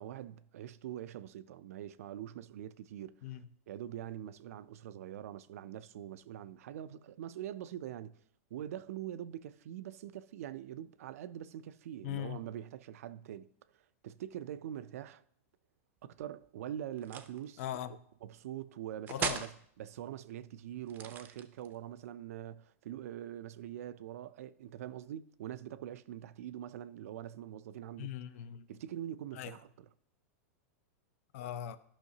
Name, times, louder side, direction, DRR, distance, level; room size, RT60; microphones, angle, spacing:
voice 1, 0.0-8.2 8.5-13.5 13.7-15.2 16.0-17.6 18.2-28.2 28.7-29.9, right 11 dB, 75° right, 0.4 m, -44 dB
voice 2, 12.0-12.4 17.6-18.0 19.1-19.4 28.0-28.7 29.3-29.6 31.3-31.8, left 11 dB, 60° left, 0.5 m, -39 dB
sound 1, 17.0-17.4 19.1-19.6 20.8-21.8, right 7 dB, 25° right, 0.6 m, -38 dB
12.0 x 5.7 x 2.8 m
supercardioid pair, 140°, 8 cm